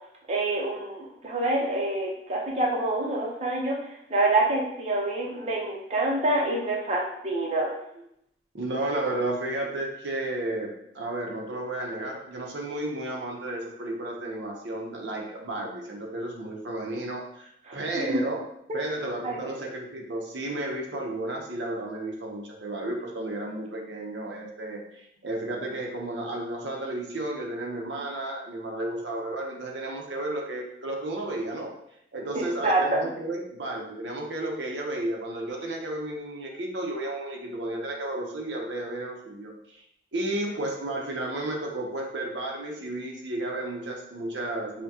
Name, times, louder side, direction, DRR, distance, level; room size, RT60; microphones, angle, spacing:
voice 1, 0.3-3.8 4.1-7.7 17.7-17.8 18.1-18.2 19.2-19.5 32.3-33.0, right 2 dB, 35° right, -3 dB, 0.7 m, -26 dB
voice 2, 8.5-18.4 18.7-31.7 32.1-39.8 40.1-44.8, right 1 dB, 85° right, 0 dB, 0.7 m, -33 dB
5.6 x 2.2 x 2.8 m, 0.76 s
head